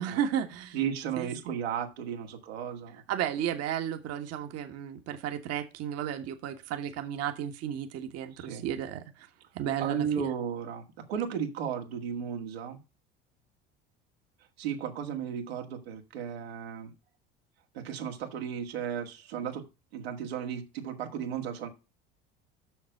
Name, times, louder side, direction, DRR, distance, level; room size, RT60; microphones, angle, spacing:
voice 1, 0.0-0.8 1.2-1.5 3.1-9.3 9.5-10.3, right 9 dB, 55° right, 1.4 m, -33 dB
voice 2, 0.7-3.0 8.4-8.6 9.8-12.8 14.6-16.9 17.7-19.6 19.9-21.7, right 8 dB, 85° right, 1.9 m, -34 dB
7.1 x 6.7 x 6.4 m
hypercardioid pair, 75°, 30 cm